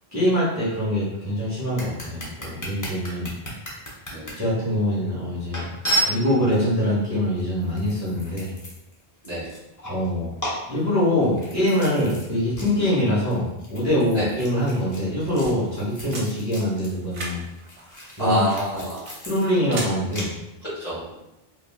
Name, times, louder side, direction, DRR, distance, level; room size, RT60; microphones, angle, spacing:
voice 1, 0.1-3.3 4.4-5.6 6.0-8.5 9.8-10.3 10.7-17.4 18.2-18.5 19.2-20.4, left 1 dB, 15° right, -10 dB, 0.9 m, -24 dB
sound 1, 1.8-4.3 4.9-5.0 5.5-6.6 7.4-9.0 9.3-10.1 10.4-12.3 12.5-12.7 13.0-16.9 17.2-20.2, right 1 dB, 25° left, 0.5 m, -32 dB
sound 2, 14.9-19.9, right 2 dB, 75° right, 0.9 m, -40 dB
voice 2, 18.2-19.1 20.6-21.1, equal, 40° left, -9 dB, 1.2 m, -27 dB
3.2 x 2.4 x 2.3 m, 0.91 s
omnidirectional pair, 1.0 m